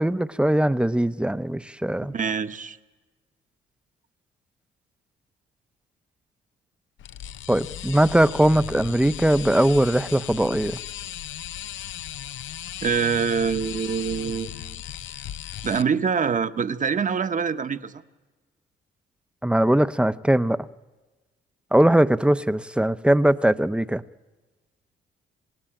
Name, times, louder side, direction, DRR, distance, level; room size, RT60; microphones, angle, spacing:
voice 1, 0.0-2.1 7.5-10.8 19.4-20.6 21.7-24.0, right 1 dB, 5° right, 14 dB, 0.8 m, -20 dB
voice 2, 2.0-2.8 12.8-14.8 15.6-18.0, right 6 dB, 40° right, 10 dB, 1.2 m, -25 dB
sound 1, 7.0-15.8, left 11 dB, 75° left, 0.7 m, -36 dB
27.0 x 16.5 x 8.9 m, 1.2 s
cardioid pair, 90°, 20 cm